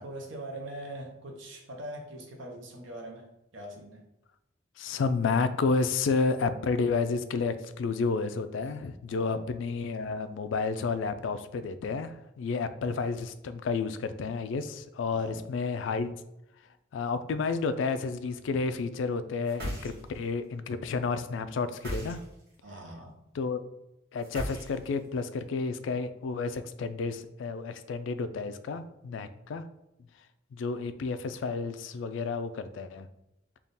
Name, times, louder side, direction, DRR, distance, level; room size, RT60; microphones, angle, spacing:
voice 1, 0.0-3.3 3.5-4.0 9.1-9.4 15.1-15.4 22.6-23.2, right 1 dB, 80° right, 2 dB, 0.8 m, -42 dB
voice 2, 4.8-16.1 16.9-22.2 23.3-23.6 24.1-29.6 30.5-33.1, left 4 dB, 75° left, 11 dB, 0.3 m, -31 dB
sound 1, 19.4-20.3 21.7-22.5 24.2-25.1, equal, 55° right, 1.3 m, -37 dB
3.5 x 2.3 x 4.0 m, 0.87 s
head